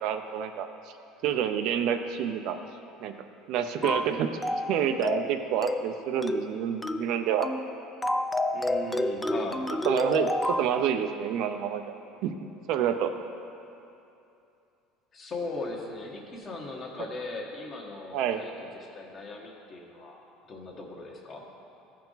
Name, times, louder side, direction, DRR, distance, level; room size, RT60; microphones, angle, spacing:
voice 1, 0.0-0.7 1.2-2.6 3.0-3.2 3.5-4.3 4.7-7.5 9.8-11.9 12.2-12.3 12.7-13.1 18.1-18.4, right 9 dB, 65° right, 7 dB, 0.5 m, -28 dB
sound 1, 3.8-4.1 4.4-4.7 5.0-5.3 5.6-5.9 6.2-6.5 6.8-7.1 7.4-7.7 8.0-10.7, left 1 dB, 10° left, 0.4 m, -29 dB
voice 2, 8.5-9.6 15.1-18.5 18.8-20.2 20.5-21.4, left 2 dB, 35° left, 0 dB, 1.3 m, -38 dB
14.0 x 4.6 x 3.9 m, 2.7 s
supercardioid pair, 115°, 0 cm